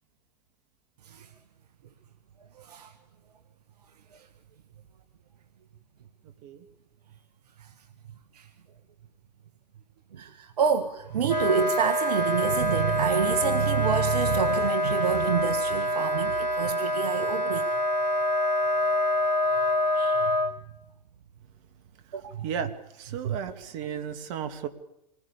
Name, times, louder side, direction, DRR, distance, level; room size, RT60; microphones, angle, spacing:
voice 1, 2.6-2.9 8.3-8.5 10.1-17.7 19.9-20.3 22.1-22.5 23.2-23.4, right 7 dB, 70° right, 10 dB, 1.6 m, -28 dB
Wind instrument woodwind instrument, 11.2-20.5, left 1 dB, 90° left, 3.7 m, -26 dB
voice 2, 22.2-22.7 23.0-24.7, right 8 dB, 50° right, 9 dB, 2.6 m, -34 dB
27.0 x 20.0 x 7.1 m, 0.83 s
hypercardioid pair, 100°, 21 cm